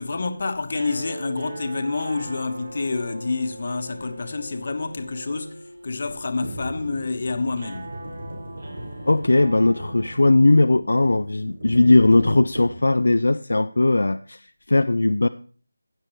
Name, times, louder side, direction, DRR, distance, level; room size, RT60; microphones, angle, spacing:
voice 1, 0.0-8.0, left 3 dB, 50° left, 1.2 m, -28 dB
twangy electric guitar, 0.7-10.9, right 2 dB, 55° right, 1.8 m, -41 dB
sound 1, 6.4-13.1, right 1 dB, 75° right, 5.2 m, -38 dB
voice 2, 9.0-15.3, left 2 dB, 75° left, 0.4 m, -18 dB
16.0 x 7.5 x 3.2 m
figure-of-eight pair, 165°, 0 cm